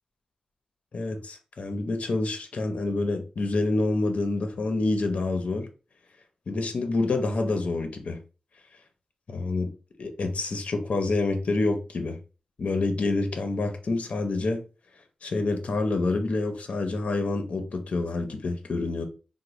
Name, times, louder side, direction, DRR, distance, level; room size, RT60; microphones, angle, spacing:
voice 1, 0.9-5.7 6.5-8.2 9.3-9.7 10.0-12.2 12.6-14.6 15.2-19.0, left 3 dB, 75° left, 0.6 m, -27 dB
3.9 x 2.1 x 3.0 m
wide cardioid pair, 120°, 2 cm